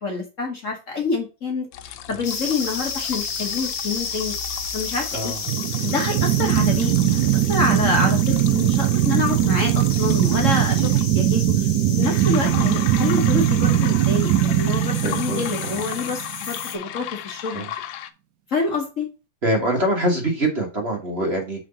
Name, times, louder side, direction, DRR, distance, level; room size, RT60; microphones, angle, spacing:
voice 1, 0.0-4.4 4.7-5.3 5.8-17.6 18.5-19.1, left 3 dB, 45° left, 2 dB, 1.5 m, -27 dB
sound 1, 1.7-11.0 12.0-18.1, left 10 dB, 85° left, 1.4 m, -36 dB
sound 2, 2.2-16.8, left 5 dB, 65° left, 1.7 m, -33 dB
voice 2, 5.1-5.4 15.0-15.8 17.5-17.7 19.4-21.7, right 1 dB, 35° right, 1 dB, 1.5 m, -25 dB
sound 3, 5.5-16.4, right 12 dB, 70° right, 1.1 m, -20 dB
6.1 x 3.9 x 5.5 m, 0.31 s
omnidirectional pair, 2.0 m